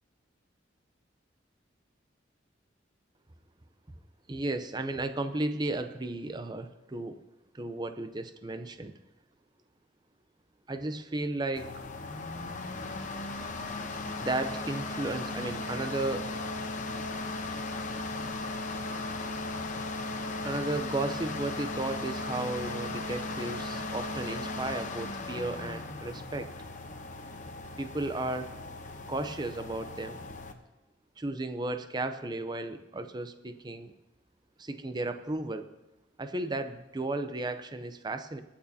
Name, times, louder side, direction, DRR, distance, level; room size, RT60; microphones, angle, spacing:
voice 1, 4.3-7.2 7.5-8.9 10.7-11.7 14.2-16.3 20.4-26.5 27.8-28.5 29.1-30.2 31.2-33.9 34.6-35.7 36.2-38.4, right 2 dB, 20° right, 9 dB, 0.6 m, -34 dB
sound 1, 11.6-30.5, left 2 dB, 40° left, 0.9 m, -37 dB
24.5 x 8.7 x 2.8 m, 1.0 s
head